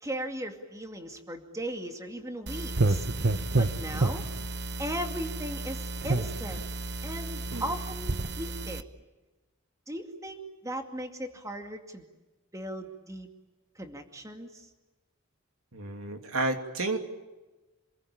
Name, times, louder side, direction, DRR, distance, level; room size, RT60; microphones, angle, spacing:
voice 1, 0.0-3.1 3.6-4.2 4.8-6.7 7.0-8.8 9.9-12.0 12.5-13.3 13.8-14.7, right 1 dB, 15° right, 5 dB, 2.3 m, -37 dB
sound 1, 2.5-8.8, right 2 dB, 55° right, 1.1 m, -30 dB
voice 2, 15.7-17.0, right 2 dB, 80° right, 5 dB, 2.9 m, -31 dB
28.0 x 21.5 x 8.8 m, 1.1 s
head